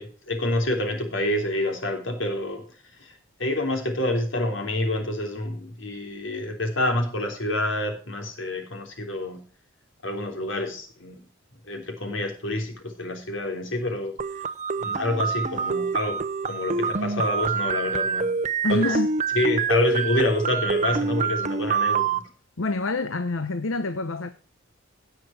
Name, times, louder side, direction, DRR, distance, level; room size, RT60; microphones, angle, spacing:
voice 1, 0.0-2.6 3.0-9.4 10.0-11.2 11.6-14.2 14.8-18.3 18.7-19.0 19.3-22.3, left 1 dB, 70° left, 3.4 m, -28 dB
sound 1, 14.2-22.2, right 5 dB, 40° right, 0.7 m, -26 dB
voice 2, 18.6-19.1 22.6-24.3, left 2 dB, 85° left, 0.9 m, -26 dB
17.0 x 6.1 x 4.3 m
head